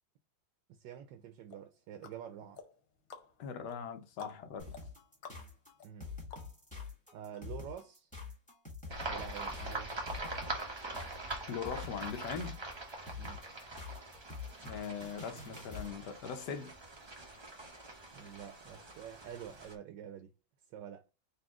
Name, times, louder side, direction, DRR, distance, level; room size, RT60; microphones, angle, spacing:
voice 1, 0.7-2.6 5.8-6.1 7.1-8.1 9.0-10.0 13.2-13.5 18.1-20.3 20.7-21.0, right 9 dB, 80° right, 1.2 m, -47 dB
sound 1, 1.5-6.9 7.3-7.4, left 5 dB, 85° left, 1.5 m, -54 dB
voice 2, 3.4-4.7 11.5-12.6 14.6-16.8, left 6 dB, 70° left, 1.3 m, -40 dB
sound 2, 4.6-16.0, left 4 dB, 5° left, 1.6 m, -46 dB
sound 3, 8.9-19.7, right 2 dB, 30° right, 0.4 m, -43 dB
4.1 x 2.8 x 3.6 m
omnidirectional pair, 2.0 m